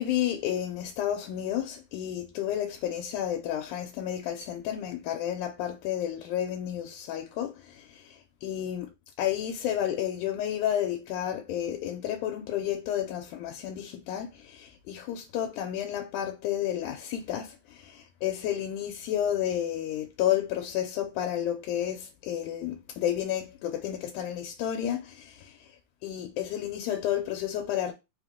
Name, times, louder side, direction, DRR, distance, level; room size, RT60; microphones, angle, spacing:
voice 1, 0.0-8.9 9.2-25.8 26.0-27.9, left 11 dB, 85° left, 2.0 m, -31 dB
4.9 x 2.1 x 3.5 m
omnidirectional pair, 3.5 m